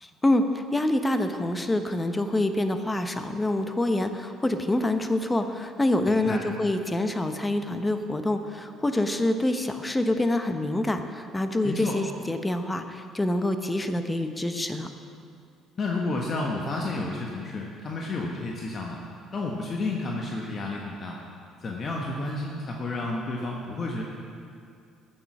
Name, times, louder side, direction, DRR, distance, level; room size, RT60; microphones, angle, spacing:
voice 1, 0.0-14.9, left 1 dB, 15° left, 8 dB, 1.0 m, -26 dB
voice 2, 6.1-6.4 11.6-12.0 15.8-19.0 19.3-21.2 21.6-24.0, left 2 dB, 40° left, -1 dB, 1.4 m, -31 dB
15.0 x 6.9 x 6.1 m, 2.4 s
figure-of-eight pair, 50°, 0 cm